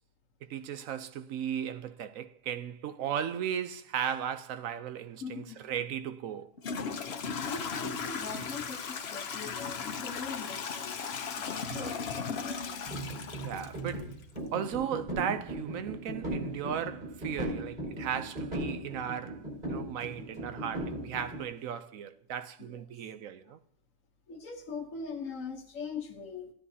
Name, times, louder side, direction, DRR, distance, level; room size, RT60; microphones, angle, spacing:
voice 1, 0.4-6.5 11.7-11.9 13.4-14.1 14.5-23.6, right 9 dB, 85° right, 1.1 m, -36 dB
voice 2, 5.2-5.6 6.8-12.8 13.2-13.4 22.6-22.8 24.3-26.5, left 5 dB, 80° left, 1.5 m, -42 dB
Toilet flush / Trickle dribble, 5.8-5.9 6.6-14.4, left 6 dB, 55° left, 1.0 m, -37 dB
sound 1, 12.9-21.4, right 1 dB, 40° right, 4.8 m, -38 dB
15.5 x 10.0 x 2.7 m
omnidirectional pair, 1.4 m